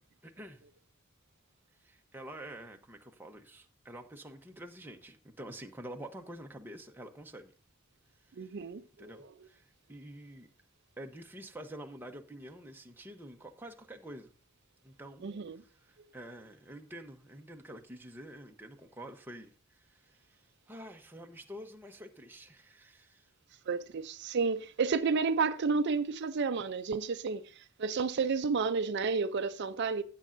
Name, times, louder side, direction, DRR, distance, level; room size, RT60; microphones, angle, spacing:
voice 1, 0.2-0.6 1.8-7.5 8.2-8.6 9.0-10.5 11.0-14.3 14.8-23.3, right 1 dB, 10° right, 0.9 m, -48 dB
voice 2, 8.4-8.8 15.2-15.6 23.7-30.0, right 5 dB, 55° right, 0.5 m, -31 dB
16.0 x 7.5 x 2.6 m
head